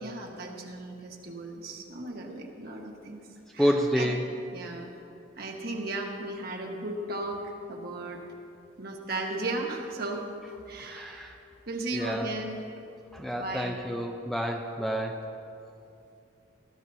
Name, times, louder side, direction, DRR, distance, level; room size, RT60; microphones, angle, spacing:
voice 1, 0.0-3.2 3.5-4.1 4.5-4.9 5.4-8.2 8.8-10.3 10.7-11.3 11.7-12.6 13.3-13.7, right 2 dB, 50° right, 1 dB, 1.4 m, -36 dB
voice 2, 3.6-4.3 10.9-11.4 11.9-12.3 13.1-15.2, equal, ahead, 1 dB, 0.5 m, -29 dB
19.0 x 13.0 x 2.7 m, 2.6 s
head